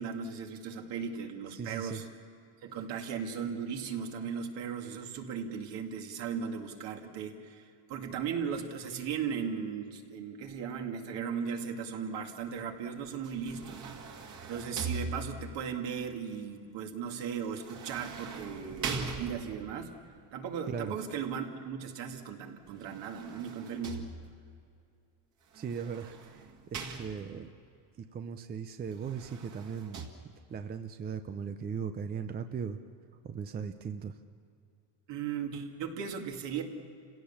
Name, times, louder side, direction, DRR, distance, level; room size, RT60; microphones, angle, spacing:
voice 1, 0.0-2.1 2.6-13.8 14.5-19.9 20.3-24.1 35.1-36.6, right 7 dB, 55° right, 3 dB, 2.4 m, -37 dB
voice 2, 1.5-2.0 20.7-21.0 25.5-27.5 28.0-30.0 30.5-32.8 33.2-34.2, right 6 dB, 20° right, 8 dB, 0.5 m, -38 dB
sound 1, 13.2-15.7 17.5-19.8 22.7-24.5 25.5-27.5 28.9-30.1, right 4 dB, 35° right, 2.3 m, -41 dB
29.0 x 17.0 x 7.2 m, 2.4 s
cardioid pair, 140°, 49 cm